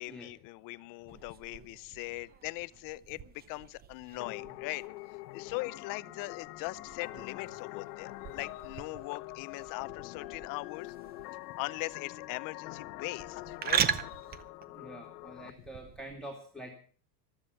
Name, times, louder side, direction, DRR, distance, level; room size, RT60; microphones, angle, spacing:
voice 1, 0.0-4.8 5.3-10.9 11.5-14.3, left 22 dB, 40° left, 0.7 m, -40 dB
sound 1, 1.1-16.1, right 8 dB, 20° right, 0.6 m, -40 dB
sound 2, 4.2-15.5, left 18 dB, 75° left, 1.1 m, -45 dB
voice 2, 14.7-16.8, right 1 dB, ahead, 2.4 m, -46 dB
15.0 x 13.0 x 5.7 m
supercardioid pair, 145°, 50 cm